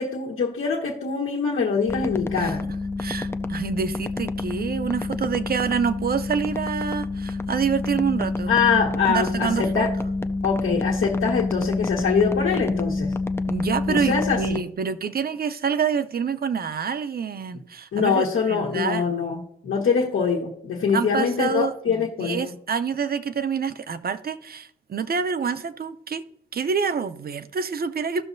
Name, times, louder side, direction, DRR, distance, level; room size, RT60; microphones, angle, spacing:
voice 1, 0.0-2.6 8.5-9.9 10.4-13.1 13.9-14.6 17.9-22.5, left 5 dB, 90° left, 1.2 m, -24 dB
sound 1, 1.9-14.6, left 3 dB, 10° left, 0.3 m, -28 dB
voice 2, 3.0-8.6 9.1-9.9 13.5-19.0 20.9-26.2 26.5-28.2, right 6 dB, 50° right, 0.6 m, -27 dB
15.5 x 6.3 x 2.6 m
wide cardioid pair, 145°, 20 cm